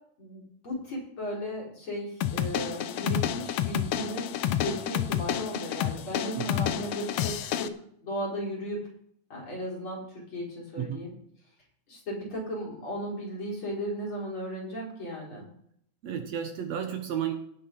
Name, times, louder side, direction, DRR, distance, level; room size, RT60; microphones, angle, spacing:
voice 1, 0.2-7.7 8.0-8.9 9.3-10.0 10.3-11.1 11.9-15.5, equal, 40° left, -3 dB, 5.7 m, -36 dB
sound 1, 2.2-7.7, left 11 dB, 75° left, 1.4 m, -30 dB
voice 2, 16.0-17.3, right 9 dB, 65° right, 6 dB, 2.1 m, -32 dB
18.0 x 6.2 x 5.4 m, 0.67 s
omnidirectional pair, 3.5 m